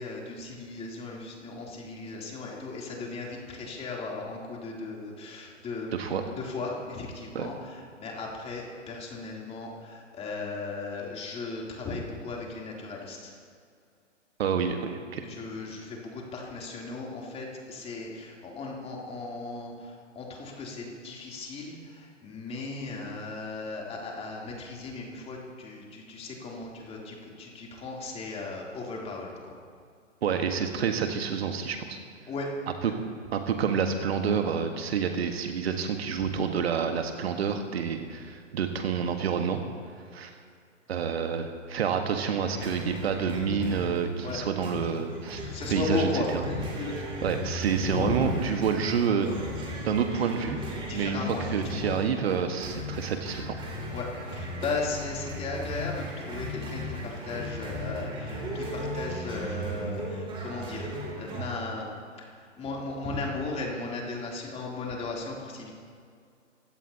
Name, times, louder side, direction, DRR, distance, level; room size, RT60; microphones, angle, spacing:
voice 1, 0.0-13.3 15.1-29.6 32.3-32.9 44.2-44.4 45.5-47.3 47.9-48.3 50.8-51.9 53.9-60.9 61.2-65.7, left 3 dB, 15° left, -2 dB, 3.1 m, -36 dB
voice 2, 14.4-15.2 30.2-32.0 33.3-39.6 40.1-40.3 40.9-46.1 47.2-49.4 49.8-50.6 50.9-51.2 51.5-53.5, right 7 dB, 55° right, 5 dB, 1.5 m, -28 dB
sound 1, 42.5-61.5, equal, 15° right, 3.1 m, -37 dB
24.0 x 16.5 x 2.9 m, 2.3 s
figure-of-eight pair, 125°, 38 cm